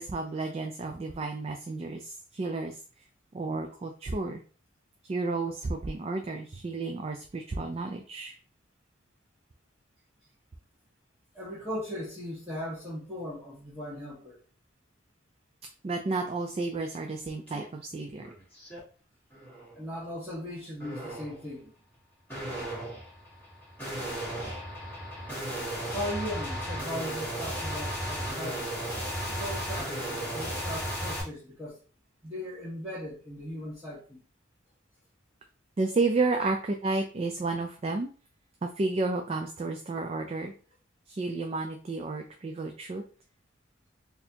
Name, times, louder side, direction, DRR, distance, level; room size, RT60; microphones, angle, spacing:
voice 1, 0.0-2.8 3.3-4.4 5.0-8.3 15.8-18.3 35.8-38.1 38.6-40.5 41.1-43.0, right 3 dB, 30° right, 4 dB, 0.3 m, -31 dB
voice 2, 11.3-14.4 19.7-21.7 25.9-28.7 29.2-31.8 32.2-34.2 36.4-36.5, left 1 dB, 5° right, -11 dB, 1.2 m, -38 dB
sound 1, 17.5-17.6 18.1-18.8 19.3-19.7 20.8-21.4 22.3-31.2, equal, 10° left, 1.5 m, -35 dB
4.1 x 2.7 x 2.8 m, 0.39 s
head